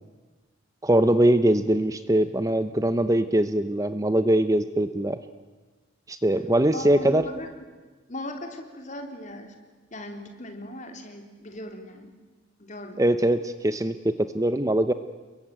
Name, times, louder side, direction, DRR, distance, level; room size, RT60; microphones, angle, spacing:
voice 1, 0.8-5.2 6.1-7.3 13.0-14.9, right 1 dB, 15° right, 11 dB, 0.8 m, -22 dB
voice 2, 6.7-7.5 8.1-9.5 9.9-12.1 12.6-13.0, left 1 dB, 40° left, 4 dB, 3.7 m, -38 dB
29.0 x 22.5 x 9.3 m, 1.3 s
head